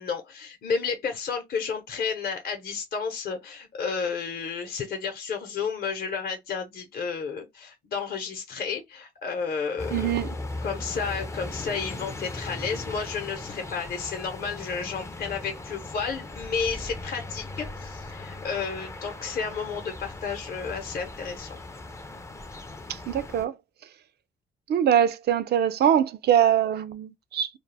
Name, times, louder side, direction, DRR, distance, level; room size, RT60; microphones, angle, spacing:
voice 1, 0.0-10.3 10.6-21.6, left 5 dB, 50° left, 0.8 m, -32 dB
sound 1, 9.8-23.4, left 2 dB, 15° left, 0.4 m, -38 dB
voice 2, 9.9-10.3 22.9-23.5 24.7-27.5, right 9 dB, 55° right, 0.4 m, -23 dB
2.2 x 2.0 x 3.2 m
cardioid pair, 90°, 20 cm